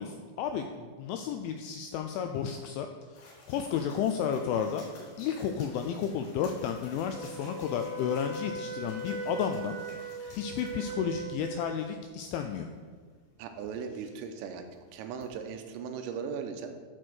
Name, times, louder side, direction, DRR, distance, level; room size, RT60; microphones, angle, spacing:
voice 1, 0.0-4.9 5.2-12.7, left 8 dB, 85° left, 5 dB, 2.7 m, -32 dB
sound 1, 3.1-15.5, left 2 dB, 50° left, 4.5 m, -55 dB
Wind instrument woodwind instrument, 7.1-11.8, right 2 dB, 70° right, 2.0 m, -39 dB
voice 2, 13.4-16.8, right 6 dB, 85° right, 6 dB, 3.4 m, -38 dB
12.0 x 4.5 x 6.2 m, 1.5 s
omnidirectional pair, 5.9 m